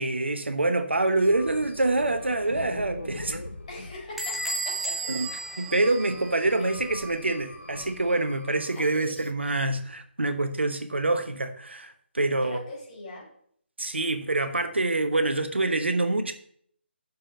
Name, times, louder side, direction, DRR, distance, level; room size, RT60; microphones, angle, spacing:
voice 1, 0.0-3.4 5.1-5.3 5.6-12.6 13.8-16.3, right 2 dB, 70° right, 8 dB, 1.0 m, -26 dB
sound 1, 1.1-9.3, left 1 dB, 80° left, 0.9 m, -42 dB
voice 2, 3.7-5.1 6.6-6.7 8.7-9.2 12.4-13.3, left 2 dB, 35° left, -4 dB, 4.1 m, -40 dB
Bell / Squeak, 4.2-6.7, right 2 dB, ahead, 0.3 m, -33 dB
6.5 x 5.4 x 6.8 m, 0.62 s
figure-of-eight pair, 150°, 6 cm